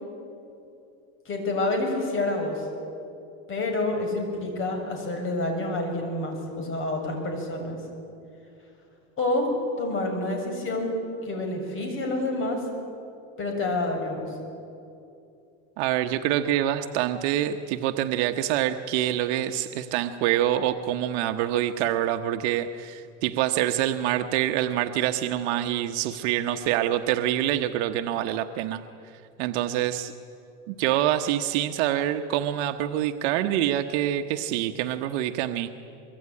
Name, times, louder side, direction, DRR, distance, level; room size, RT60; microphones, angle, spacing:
voice 1, 1.2-2.7 3.5-7.8 9.2-12.6 13.4-14.3, left 2 dB, 35° left, 3 dB, 6.7 m, -28 dB
voice 2, 15.8-28.8 29.4-30.1 30.7-35.7, right 12 dB, 65° right, 6 dB, 1.2 m, -26 dB
24.5 x 23.5 x 9.8 m, 2.7 s
supercardioid pair, 140°, 36 cm